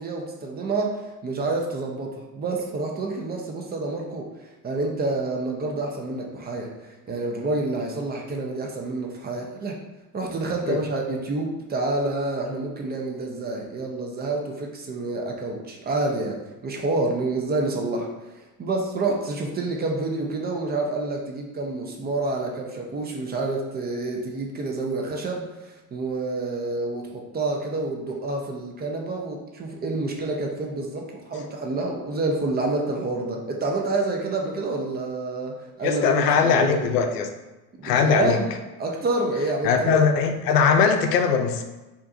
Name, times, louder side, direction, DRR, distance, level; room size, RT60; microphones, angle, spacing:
voice 1, 0.0-6.7 7.1-9.8 10.1-18.1 18.3-36.9 37.8-38.5 38.8-40.0, right 2 dB, 20° right, 1 dB, 0.6 m, -28 dB
voice 2, 35.8-37.3 37.8-38.4 39.6-41.6, left 6 dB, 90° left, 6 dB, 0.6 m, -20 dB
4.6 x 2.6 x 2.6 m, 1.1 s
hypercardioid pair, 95°, 47 cm